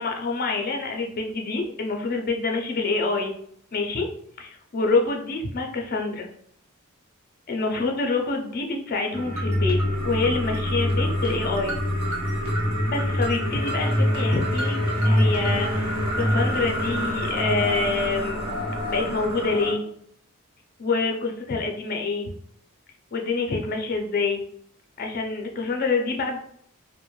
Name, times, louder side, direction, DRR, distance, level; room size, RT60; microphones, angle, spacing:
voice 1, 0.0-3.3 3.7-4.1 4.7-6.3 7.5-9.8 10.0-11.8 12.9-14.8 15.0-18.4 18.8-19.8 20.8-22.3 23.1-24.4 25.0-26.4, left 3 dB, 45° left, 2 dB, 0.5 m, -26 dB
sound 1, 9.1-19.7, equal, 75° right, 0.9 m, -25 dB
2.5 x 2.1 x 3.0 m, 0.67 s
head